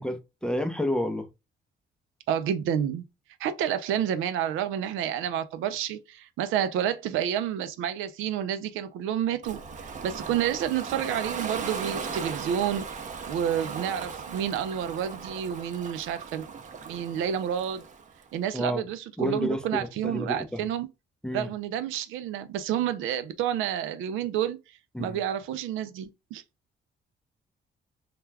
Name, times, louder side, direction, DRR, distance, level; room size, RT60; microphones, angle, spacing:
voice 1, 0.0-1.3 18.5-18.8 19.2-19.6 20.0-20.4 21.2-21.5 24.9-25.2, left 1 dB, 5° left, 0.5 m, -29 dB
voice 2, 2.3-3.0 3.4-12.8 13.3-16.5 16.9-17.8 18.3-20.9 21.3-24.6 25.0-26.4, right 9 dB, 85° right, 0.4 m, -29 dB
Ocean, 9.4-18.3, right 5 dB, 40° right, 0.6 m, -38 dB
2.2 x 2.2 x 3.1 m
cardioid pair, 90°, 20 cm